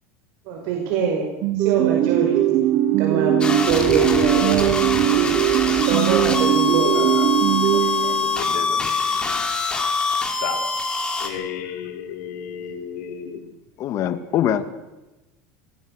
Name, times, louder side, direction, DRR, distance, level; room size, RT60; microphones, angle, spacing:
voice 1, 0.5-1.3 1.5-2.7 3.0-5.3 5.7-7.1, right 4 dB, 60° right, 1 dB, 5.3 m, -25 dB
sound 1, 1.4-8.6, right 14 dB, 45° right, 1.2 m, -20 dB
sound 2, 3.4-11.3, left 4 dB, 10° left, 3.5 m, -24 dB
voice 2, 6.9-9.5 10.4-13.5 13.8-13.9, left 9 dB, 80° left, 3 dB, 5.0 m, -35 dB
voice 3, 13.8-14.6, left 10 dB, 40° left, 10 dB, 2.2 m, -22 dB
26.0 x 20.0 x 6.6 m, 1.0 s
supercardioid pair, 160°, 9 cm